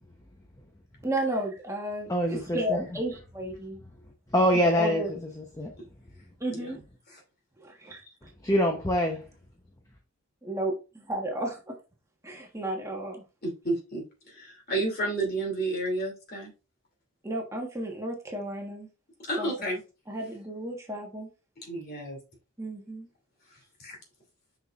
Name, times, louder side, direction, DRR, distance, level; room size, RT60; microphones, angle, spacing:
voice 1, 1.0-3.8 4.6-5.1 6.4-6.8 7.6-8.3 10.4-11.8 12.2-13.2 17.2-18.9 19.4-19.5 20.1-21.3 22.6-23.1, right 1 dB, 15° right, 1.2 m, -33 dB
voice 2, 2.1-2.8 4.3-5.0 5.6-5.7 8.4-9.2, equal, 15° left, 0.8 m, -24 dB
voice 3, 13.4-16.5 19.3-19.8 21.7-22.2 23.8-23.9, right 2 dB, 45° left, 2.7 m, -31 dB
6.6 x 5.9 x 2.4 m
head